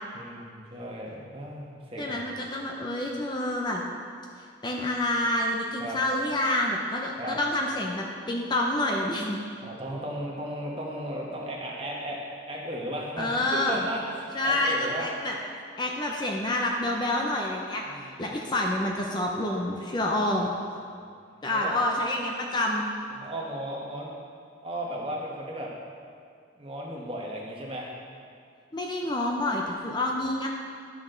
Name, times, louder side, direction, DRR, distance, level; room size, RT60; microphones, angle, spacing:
voice 1, 0.1-2.2 5.8-6.0 7.2-7.4 9.6-12.2 12.5-15.1 17.8-18.2 20.3-20.4 20.9-21.0 21.5-21.8 23.1-24.1 24.6-25.7 26.6-27.9, right 1 dB, 30° right, -3 dB, 1.3 m, -35 dB
voice 2, 2.0-3.8 4.6-9.4 13.2-13.9 14.3-15.3 15.8-20.5 21.4-22.9 28.7-30.5, left 1 dB, 25° left, -1 dB, 0.6 m, -28 dB
11.0 x 6.3 x 3.9 m, 2.3 s
head